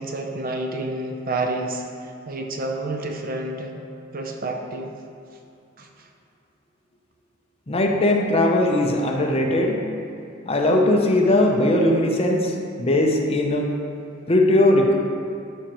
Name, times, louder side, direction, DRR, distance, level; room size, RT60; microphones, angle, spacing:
voice 1, 0.0-3.7 4.1-4.9 5.8-6.1, right 2 dB, 45° right, 2 dB, 0.6 m, -29 dB
voice 2, 7.7-9.8 10.4-13.7 14.3-14.9, left 1 dB, 30° left, 1 dB, 0.6 m, -19 dB
12.0 x 5.1 x 3.0 m, 2.5 s
head